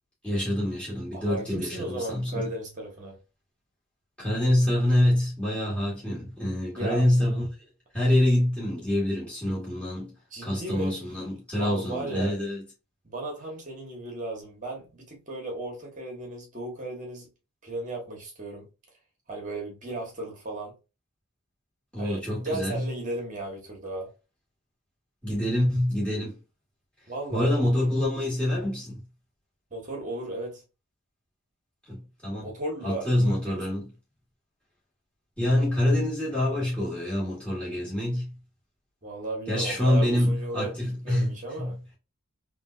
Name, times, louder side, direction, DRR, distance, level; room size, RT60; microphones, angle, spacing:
voice 1, 0.2-2.5 4.2-7.5 7.9-10.1 10.4-12.6 21.9-22.9 25.2-26.3 27.3-29.0 31.9-32.5 32.8-33.9 35.4-38.3 39.5-41.8, left 1 dB, 5° left, 1.8 m, -26 dB
voice 2, 1.1-3.2 6.8-7.1 10.3-11.0 11.6-12.4 13.0-17.3 17.6-18.7 19.3-20.7 22.0-24.1 27.1-27.5 29.7-30.6 32.4-33.8 39.0-41.8, right 2 dB, 35° right, 1.3 m, -35 dB
3.7 x 2.7 x 2.5 m
head